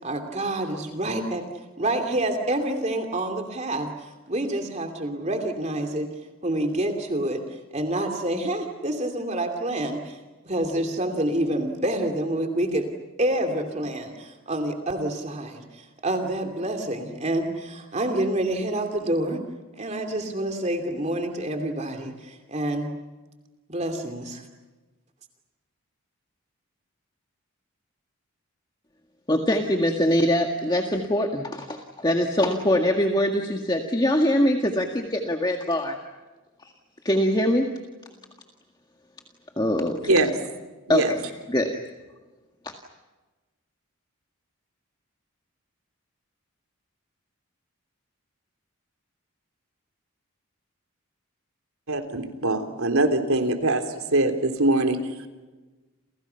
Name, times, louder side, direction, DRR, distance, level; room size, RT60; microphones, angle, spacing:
voice 1, 0.0-1.5 1.8-6.1 6.4-10.2 10.4-12.9 13.2-19.4 19.8-22.9 23.7-24.4, right 1 dB, 30° right, 5 dB, 2.8 m, -27 dB
voice 2, 29.3-36.0 36.6-36.7 37.0-37.7 39.6-40.1 40.9-41.2 41.5-41.7 42.6-42.7, left 1 dB, 20° left, 3 dB, 1.9 m, -23 dB
voice 3, 40.0-40.3 40.9-41.1 51.9-53.8 54.1-55.0, right 2 dB, 80° right, 7 dB, 3.5 m, -22 dB
30.0 x 29.5 x 5.8 m, 1.2 s
head